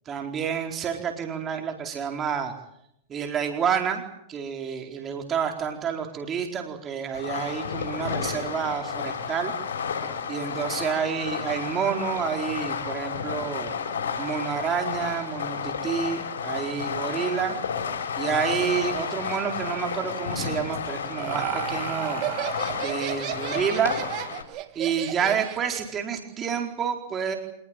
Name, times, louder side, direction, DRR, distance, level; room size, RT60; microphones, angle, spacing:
voice 1, 0.1-2.5 3.1-4.0 4.3-9.5 10.3-13.7 14.2-17.6 18.2-23.9 24.8-27.4, right 7 dB, 25° right, 3 dB, 4.3 m, -29 dB
Fireworks, 7.1-24.4, left 6 dB, 75° left, 7.0 m, -31 dB
Laughter, 20.7-25.9, right 16 dB, 45° right, 2.4 m, -33 dB
26.0 x 20.5 x 9.1 m, 0.77 s
hypercardioid pair, 115°, 0 cm